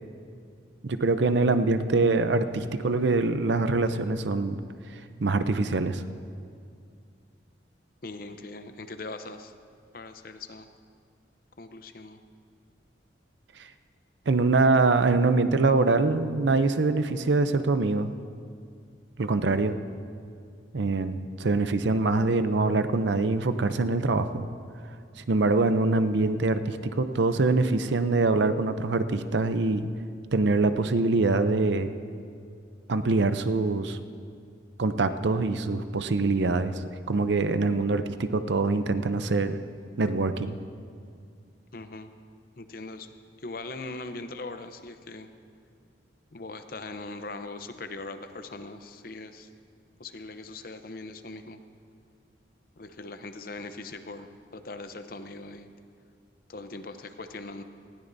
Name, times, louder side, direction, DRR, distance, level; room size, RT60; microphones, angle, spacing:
voice 1, 0.8-4.6 5.2-6.0 14.3-18.1 19.2-19.8 20.7-24.5 25.3-29.9 30.3-31.9 32.9-34.0 34.8-36.7 37.1-39.6 40.0-40.6, right 3 dB, 70° right, 10 dB, 0.6 m, -24 dB
voice 2, 8.0-9.5 9.9-10.7 11.6-12.2 41.7-42.1 42.6-45.3 46.3-49.5 50.0-51.6 52.8-55.7 56.5-57.6, left 2 dB, 50° left, 8 dB, 0.7 m, -40 dB
19.5 x 16.0 x 2.7 m, 2.3 s
head